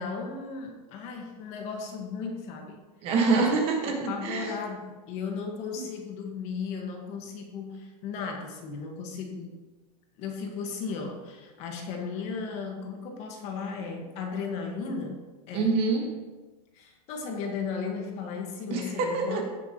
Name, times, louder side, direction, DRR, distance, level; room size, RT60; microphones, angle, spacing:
voice 1, 0.0-2.8 3.4-3.5 3.9-9.5 10.2-15.8 16.7-19.4, left 5 dB, 30° left, 2 dB, 1.5 m, -35 dB
voice 2, 3.0-4.5 5.8-5.9 15.5-16.1 18.7-19.4, right 4 dB, 30° right, 2 dB, 1.5 m, -26 dB
15.5 x 7.1 x 3.0 m, 1.2 s
supercardioid pair, 165°, 21 cm